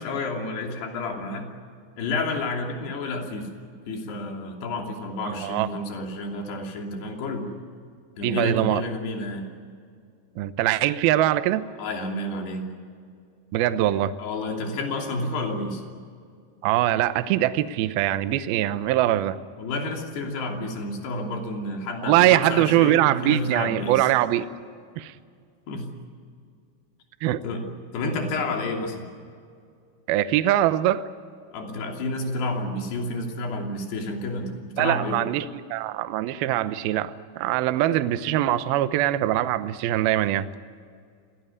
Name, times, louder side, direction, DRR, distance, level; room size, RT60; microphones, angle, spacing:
voice 1, 0.0-1.5 2.0-3.5 3.9-7.5 8.2-9.5 11.8-12.7 14.2-15.8 19.6-24.1 25.7-25.9 27.4-27.6 27.9-29.1 31.5-35.2, left 2 dB, 60° left, 2 dB, 4.8 m, -30 dB
voice 2, 5.3-5.7 8.2-8.8 10.4-11.7 13.5-14.1 16.6-19.4 22.0-24.5 25.0-25.1 27.2-27.4 30.1-31.1 34.8-35.5 35.7-40.5, right 13 dB, 75° right, 12 dB, 2.2 m, -22 dB
26.5 x 18.0 x 9.8 m, 2.2 s
omnidirectional pair, 5.5 m